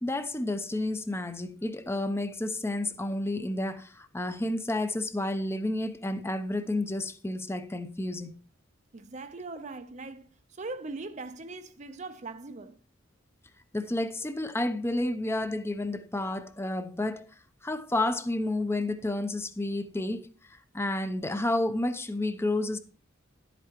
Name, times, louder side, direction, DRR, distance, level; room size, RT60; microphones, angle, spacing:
voice 1, 0.0-8.3 13.7-17.3 17.6-22.8, left 1 dB, 15° left, 0.7 m, -31 dB
voice 2, 8.9-10.2 10.6-12.8, right 3 dB, 35° right, 0.7 m, -40 dB
11.0 x 8.3 x 3.0 m
head